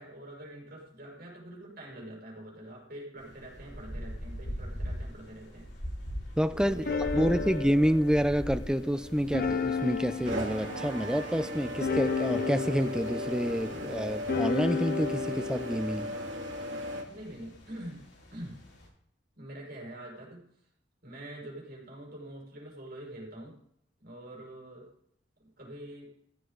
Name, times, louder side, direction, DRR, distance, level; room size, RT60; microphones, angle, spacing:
voice 1, 0.0-5.7 6.5-7.5 17.1-18.6 19.3-20.5 21.0-23.6 24.0-24.9 25.4-26.1, right 1 dB, 55° right, 5.9 m, -45 dB
sound 1, 3.2-18.9, equal, 80° left, 7.2 m, -43 dB
voice 2, 6.4-6.8 7.1-16.1, equal, 5° right, 0.5 m, -28 dB
sound 2, 6.7-15.8, left 5 dB, 50° left, 0.7 m, -34 dB
sound 3, 8.8-17.0, equal, 80° right, 2.6 m, -37 dB
15.0 x 14.0 x 4.0 m
head